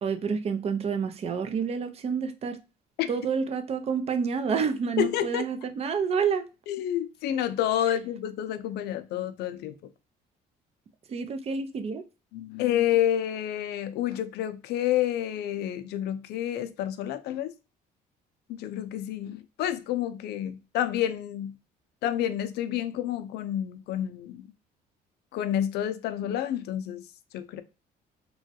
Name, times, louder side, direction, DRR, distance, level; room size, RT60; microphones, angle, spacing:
voice 1, 0.0-2.6 3.1-6.4 11.1-12.0, right 6 dB, 35° right, 0.5 m, -28 dB
voice 2, 5.0-5.5 6.7-9.7 12.3-17.5 18.5-21.5 22.0-24.5 25.3-27.0 27.3-27.6, left 11 dB, 75° left, 0.4 m, -29 dB
3.0 x 2.3 x 2.7 m
cardioid pair, 110°, 17 cm